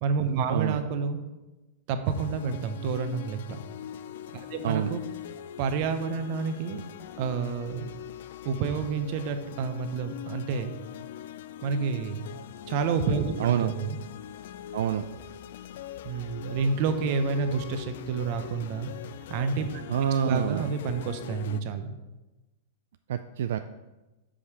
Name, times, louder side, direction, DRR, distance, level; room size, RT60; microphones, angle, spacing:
voice 1, 0.0-1.2 1.9-3.6 4.3-5.0 5.6-6.8 7.2-7.9 8.4-10.7 11.6-12.3 12.7-14.0 16.0-18.9 19.3-19.8 20.2-21.9, right 5 dB, 50° right, 8 dB, 0.8 m, -29 dB
sound 1, 2.0-21.6, left 11 dB, 70° left, 0.3 m, -42 dB
voice 2, 13.4-13.7 14.7-15.0 19.9-20.7 23.1-23.6, right 9 dB, 80° right, 8 dB, 0.3 m, -26 dB
5.4 x 5.0 x 6.0 m, 1.1 s
supercardioid pair, 145°, 0 cm